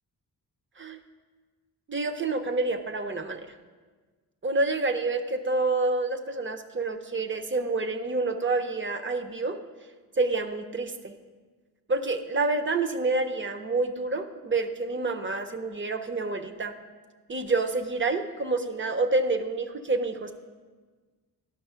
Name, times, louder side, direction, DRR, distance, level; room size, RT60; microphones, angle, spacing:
voice 1, 1.9-3.5 4.4-9.6 10.2-11.1 11.9-16.7 17.3-20.3, right 3 dB, 30° right, 8 dB, 0.6 m, -28 dB
10.5 x 6.3 x 5.6 m, 1.4 s
wide cardioid pair, 140°, 40 cm